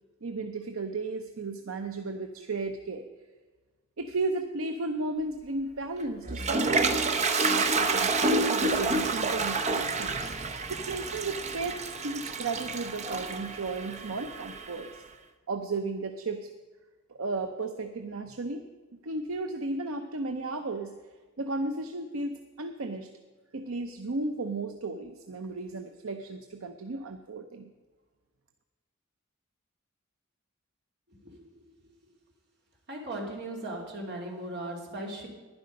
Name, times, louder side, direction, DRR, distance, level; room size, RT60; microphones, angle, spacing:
voice 1, 0.2-3.0 4.0-10.3 10.7-15.0 15.5-16.5 17.1-18.6 19.0-21.0 21.4-23.1 23.5-27.7, right 3 dB, 75° right, 6 dB, 0.7 m, -34 dB
Toilet flush, 6.0-14.9, right 3 dB, 35° right, 0.7 m, -29 dB
voice 2, 32.9-35.3, right 1 dB, 55° right, -1 dB, 2.8 m, -37 dB
11.5 x 10.5 x 5.3 m, 1.3 s
head